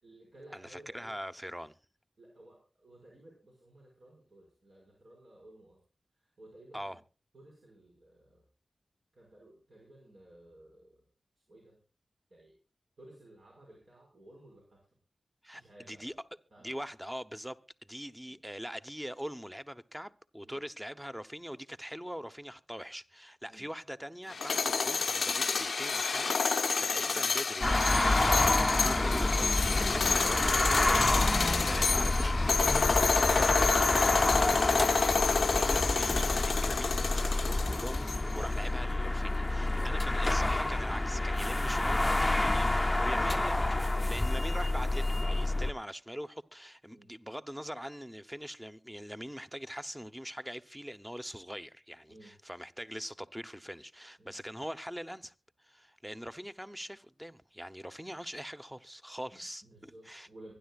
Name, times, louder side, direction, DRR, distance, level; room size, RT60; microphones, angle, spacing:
voice 1, 0.0-1.2 2.2-5.8 6.2-7.0 7.3-8.4 9.1-11.1 11.5-11.8 12.3-12.6 13.0-14.8 15.5-16.2 16.5-16.8 18.3-18.4 20.4-20.5 23.5-23.7 27.0-27.2 39.7-40.1 41.8-42.0 42.7-43.5 46.9-47.1 52.1-52.3 54.2-54.4 59.3-60.5, right 1 dB, 65° right, 5.7 m, -55 dB
voice 2, 0.5-1.7 6.7-7.0 15.4-15.6 15.9-16.1 16.6-42.7 43.0-55.3 55.6-60.3, equal, 5° right, 1.0 m, -42 dB
sound 1, 24.3-38.4, left 5 dB, 75° left, 0.5 m, -29 dB
sound 2, 27.6-45.7, left 2 dB, 20° left, 0.6 m, -28 dB
25.0 x 10.5 x 2.4 m
wide cardioid pair, 65°, 0 cm